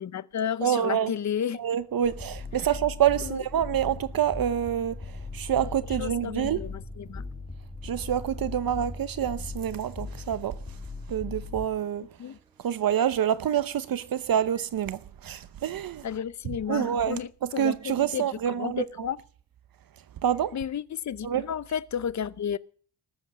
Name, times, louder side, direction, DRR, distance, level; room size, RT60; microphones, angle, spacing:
voice 1, 0.0-1.6 3.2-3.4 6.0-7.2 12.2-12.4 16.0-19.2 20.5-22.6, left 8 dB, 45° left, 0.8 m, -32 dB
voice 2, 0.6-1.1 1.5-6.6 7.8-10.6 11.1-12.1 12.6-16.0 16.7-19.1 20.2-20.6 21.2-21.4, right 9 dB, 60° right, 0.8 m, -27 dB
Microwave oven, 1.6-14.1 14.5-14.7 15.6-15.8 16.7-16.9 17.8-18.0, right 2 dB, 15° right, 1.7 m, -50 dB
sound 1, 2.0-11.7, left 4 dB, 20° left, 1.9 m, -39 dB
19.5 x 7.8 x 7.4 m
wide cardioid pair, 175°, 38 cm